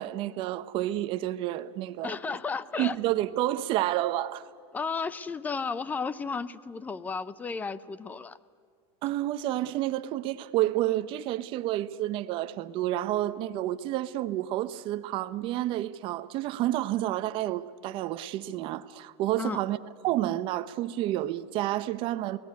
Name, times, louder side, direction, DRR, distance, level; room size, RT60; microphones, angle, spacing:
voice 1, 0.0-2.2 2.8-4.4 9.0-19.8 20.0-22.4, right 14 dB, 35° right, 0.8 m, -30 dB
voice 2, 2.0-2.9 4.7-8.4 19.4-19.6, left 5 dB, 10° left, 0.6 m, -33 dB
28.5 x 19.0 x 9.6 m
supercardioid pair, 165°, 14 cm